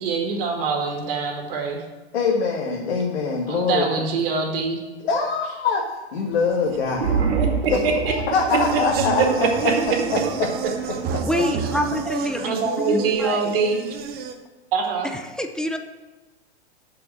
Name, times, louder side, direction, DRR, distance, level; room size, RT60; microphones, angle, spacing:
voice 1, 0.0-1.8 3.5-4.8 7.6-7.7 12.4-13.8 14.7-15.1, right 4 dB, 55° right, 2 dB, 2.2 m, -24 dB
voice 2, 2.1-3.9 5.0-7.3 7.7-9.7 10.1-10.5 11.1-11.2 12.3-12.5, left 4 dB, 65° left, -1 dB, 1.8 m, -24 dB
sound 1, 6.6-11.0, right 5 dB, 75° right, 2.0 m, -27 dB
sound 2, 8.5-14.3, right 5 dB, 30° right, 1.0 m, -30 dB
voice 3, 11.2-13.6 15.0-15.8, left 1 dB, ahead, 6 dB, 0.4 m, -27 dB
6.9 x 6.6 x 7.5 m, 1.1 s
hypercardioid pair, 115°, 33 cm